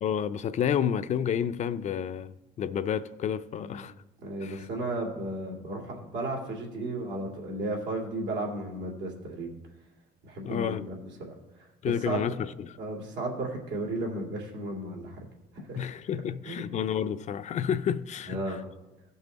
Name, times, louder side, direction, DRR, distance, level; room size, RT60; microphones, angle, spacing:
voice 1, 0.0-3.9 4.4-4.7 10.4-10.9 11.8-12.4 12.7-12.8 15.8-18.4, left 8 dB, 45° left, 0.4 m, -30 dB
voice 2, 3.5-3.8 4.2-9.5 10.2-12.3 12.8-15.2 15.5-15.9 16.4-16.7 18.3-18.6, right 2 dB, 85° right, 2.5 m, -34 dB
16.0 x 5.5 x 4.0 m
cardioid pair, 110°, 17 cm